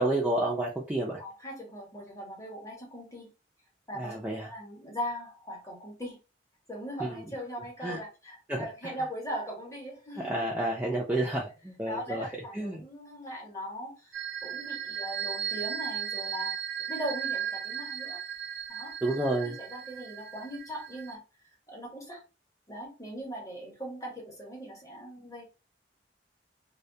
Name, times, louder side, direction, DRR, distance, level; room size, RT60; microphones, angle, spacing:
voice 1, 0.0-1.2 4.0-4.5 7.8-8.0 8.5-8.6 10.2-12.3 12.5-12.8 19.0-19.5, right 1 dB, 10° right, -4 dB, 0.3 m, -30 dB
voice 2, 1.2-3.3 3.9-6.2 6.7-10.5 11.8-16.6 16.9-18.2 18.7-21.2 21.7-22.2 22.7-25.4, equal, 15° left, -1 dB, 0.8 m, -40 dB
sound 1, 14.1-21.1, right 8 dB, 80° right, 0.4 m, -36 dB
2.2 x 2.1 x 2.6 m, 0.31 s
head